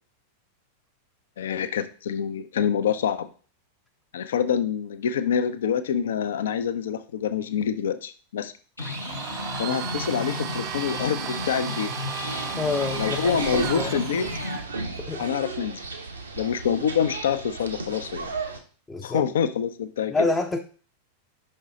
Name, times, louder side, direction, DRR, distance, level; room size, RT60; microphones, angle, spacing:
voice 1, 1.4-3.3 4.1-8.5 9.6-11.9 13.0-14.3 15.2-15.8 16.4-18.3 19.0-20.1, left 8 dB, 60° left, 11 dB, 0.5 m, -26 dB
sound 1, 8.8-14.6, left 3 dB, 80° left, 0.8 m, -34 dB
Domestic sounds home sounds, 8.8-14.7, right 12 dB, 35° right, 0.3 m, -35 dB
sound 2, 12.2-18.6, right 4 dB, 75° right, 1.0 m, -34 dB
voice 2, 12.6-14.0 14.9-15.3 18.9-19.2 20.1-20.6, left 3 dB, 10° left, 3 dB, 0.5 m, -27 dB
5.5 x 5.5 x 3.6 m, 0.40 s
figure-of-eight pair, 90°, 0 cm